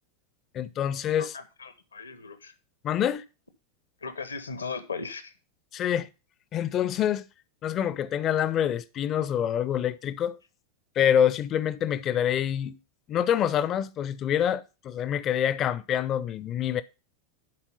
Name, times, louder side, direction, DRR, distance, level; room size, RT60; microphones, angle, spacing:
voice 1, 0.5-1.4 2.8-3.2 5.7-6.1 6.5-7.2 7.6-10.4 11.0-12.8 13.1-16.8, left 9 dB, 30° left, 0.5 m, -26 dB
voice 2, 1.2-2.5 4.0-5.3, left 5 dB, 75° left, 1.0 m, -37 dB
11.0 x 4.3 x 5.3 m
figure-of-eight pair, 90°, 0 cm